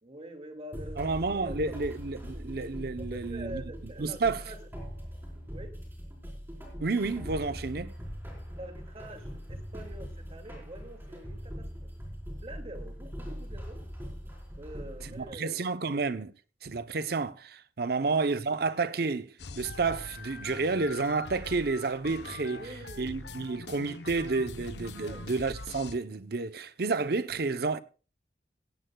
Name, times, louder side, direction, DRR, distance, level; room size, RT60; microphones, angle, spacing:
voice 1, 0.0-1.8 2.1-2.5 3.0-4.6 5.5-5.8 8.6-11.9 12.4-13.9 14.6-15.8 17.9-18.1 22.5-24.1 25.0-25.3, right 1 dB, 35° right, 2.3 m, -46 dB
sound 1, 0.7-15.2, equal, 15° right, 4.3 m, -41 dB
voice 2, 1.0-3.6 4.0-4.4 6.8-8.0 15.2-16.3 16.6-22.6 23.0-27.8, right 3 dB, 60° right, 0.7 m, -30 dB
sound 2, 19.4-25.9, left 3 dB, 70° left, 0.9 m, -43 dB
17.0 x 16.0 x 2.3 m
head